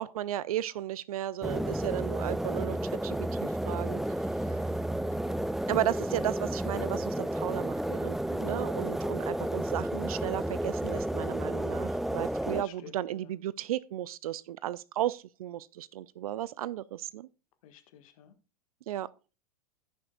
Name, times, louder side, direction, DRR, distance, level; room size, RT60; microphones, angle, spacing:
voice 1, 0.0-4.6 5.7-17.3 18.9-19.1, right 12 dB, 70° right, 0.5 m, -35 dB
sound 1, 1.4-12.6, right 1 dB, ahead, 0.3 m, -32 dB
voice 2, 5.2-5.5 12.6-13.3 17.6-18.3, left 10 dB, 60° left, 1.6 m, -54 dB
15.5 x 6.3 x 2.4 m
hypercardioid pair, 95°, 20 cm